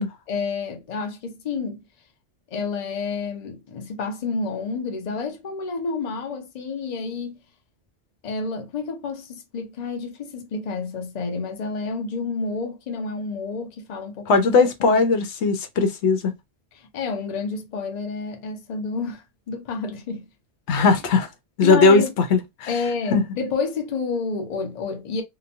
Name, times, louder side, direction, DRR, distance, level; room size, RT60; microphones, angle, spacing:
voice 1, 0.3-1.8 2.5-7.4 8.2-14.5 14.8-15.0 16.7-20.3 20.7-20.9 21.6-22.1 22.7-25.2, left 4 dB, 45° left, 0.7 m, -29 dB
voice 2, 14.3-16.3 20.7-21.3 21.6-22.0 22.3-22.7 23.1-23.2, left 4 dB, 80° left, 0.9 m, -18 dB
2.9 x 2.2 x 2.5 m
omnidirectional pair, 1.2 m